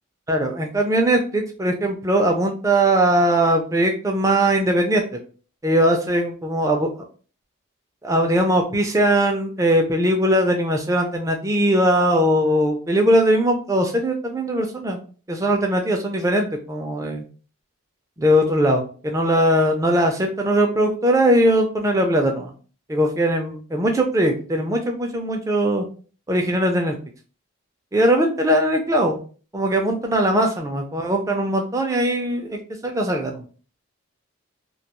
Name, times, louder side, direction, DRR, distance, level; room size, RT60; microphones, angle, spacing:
voice 1, 0.3-5.0 5.6-6.9 8.0-15.0 15.3-17.2 18.2-22.5 22.9-25.9 26.3-27.0 27.9-29.2 29.5-33.4, right 1 dB, 15° right, 3 dB, 0.3 m, -20 dB
2.2 x 2.2 x 2.9 m, 0.40 s
head